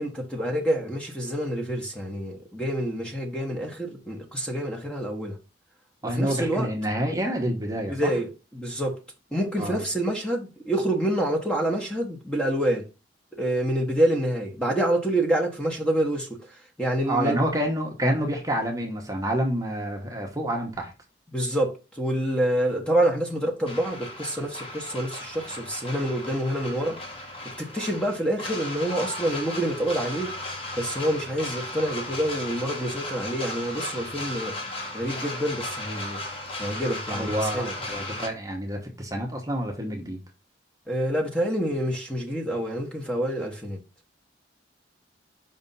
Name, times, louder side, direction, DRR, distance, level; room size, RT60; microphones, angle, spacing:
voice 1, 0.0-5.4 6.0-6.7 7.9-9.0 9.3-12.9 13.3-17.4 21.3-27.0 27.4-30.3 30.7-34.5 34.9-36.2 36.6-37.7 40.9-43.8, right 1 dB, 5° left, 1.1 m, -27 dB
voice 2, 6.0-8.1 9.6-9.8 17.1-20.9 37.1-40.2, equal, 20° right, 1.0 m, -28 dB
sound 1, 23.7-38.3, left 1 dB, 30° left, 1.4 m, -36 dB
5.4 x 3.5 x 5.4 m
head